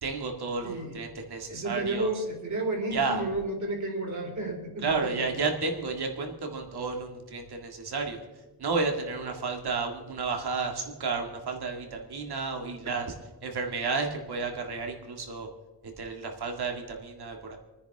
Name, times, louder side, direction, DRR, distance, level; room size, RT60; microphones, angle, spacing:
voice 1, 0.0-2.2 2.9-3.3 4.8-8.2 8.6-13.1 13.4-15.5 16.0-17.6, right 4 dB, 80° right, 3 dB, 2.1 m, -32 dB
voice 2, 0.6-1.0 1.5-5.3, right 2 dB, 50° right, -1 dB, 3.9 m, -32 dB
27.5 x 9.9 x 3.5 m, 1.2 s
wide cardioid pair, 110°, 38 cm